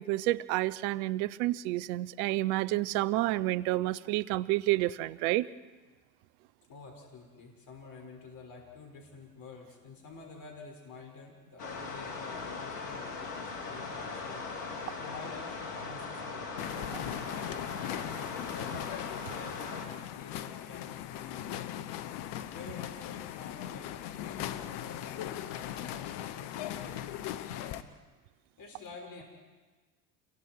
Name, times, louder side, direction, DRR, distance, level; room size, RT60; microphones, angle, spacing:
voice 1, 0.0-5.5, right 17 dB, 65° right, 19 dB, 0.9 m, -29 dB
voice 2, 6.7-14.5 15.0-18.8 19.1-21.8 22.5-27.8 28.6-29.2, left 4 dB, 45° left, 1 dB, 6.3 m, -49 dB
sound 1, 11.6-19.9, left 4 dB, 85° left, 3.5 m, -39 dB
sound 2, 16.6-27.8, left 12 dB, 60° left, 1.4 m, -39 dB
29.5 x 23.0 x 4.8 m, 1.3 s
hypercardioid pair, 75°, 47 cm